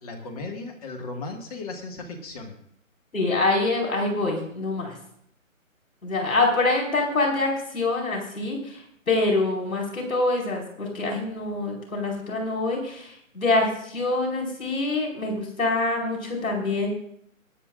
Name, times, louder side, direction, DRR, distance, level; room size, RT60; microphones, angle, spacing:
voice 1, 0.0-2.6, left 3 dB, 25° left, 2 dB, 1.8 m, -36 dB
voice 2, 3.1-5.0 6.0-16.9, left 2 dB, 85° left, 0 dB, 5.0 m, -25 dB
23.5 x 9.5 x 2.5 m, 0.68 s
hypercardioid pair, 160°, 41 cm